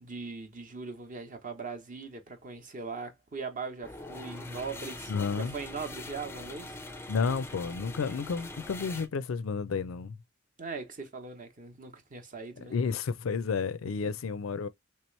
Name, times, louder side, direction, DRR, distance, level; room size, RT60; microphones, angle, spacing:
voice 1, 0.0-6.8 10.6-12.7 14.0-14.1, right 4 dB, 40° right, 0.9 m, -40 dB
sound 1, 3.8-9.1, left 2 dB, 10° left, 0.4 m, -43 dB
voice 2, 5.1-5.5 7.1-10.2 12.7-14.7, left 5 dB, 70° left, 0.4 m, -31 dB
3.3 x 3.0 x 3.1 m
head